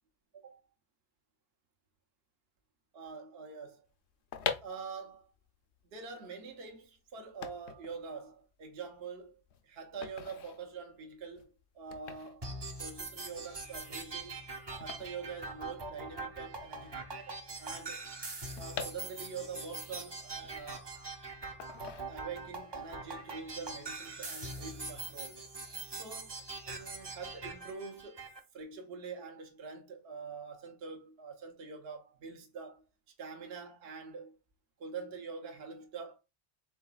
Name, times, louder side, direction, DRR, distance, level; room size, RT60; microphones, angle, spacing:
voice 1, 2.9-3.9 4.6-5.3 5.9-12.5 12.8-14.4 14.8-18.1 18.5-21.0 22.1-25.4 25.9-26.4 26.7-28.2 28.5-32.9 33.2-34.4 34.8-36.2, right 5 dB, 60° right, 1.0 m, -45 dB
sound 1, 4.1-16.2 16.5-16.6 16.7-19.6 20.0-21.0 21.6-22.6 22.9-23.2, left 7 dB, 70° left, 0.9 m, -44 dB
sound 2, 12.4-28.4, right 3 dB, 30° right, 0.6 m, -43 dB
4.7 x 3.8 x 2.3 m
omnidirectional pair, 1.2 m